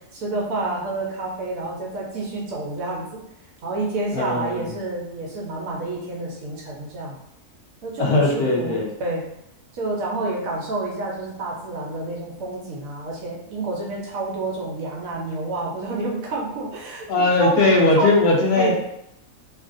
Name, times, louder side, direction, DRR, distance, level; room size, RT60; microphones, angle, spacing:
voice 1, 0.1-3.2 3.6-7.2 7.8-9.2 9.7-17.1 17.4-17.6 18.0-18.1 18.6-18.8, right 2 dB, 65° right, -2 dB, 1.0 m, -29 dB
voice 2, 4.1-4.6 8.0-8.9 17.1-18.8, left 2 dB, 75° left, -2 dB, 1.2 m, -19 dB
3.1 x 2.5 x 2.5 m, 0.80 s
omnidirectional pair, 1.6 m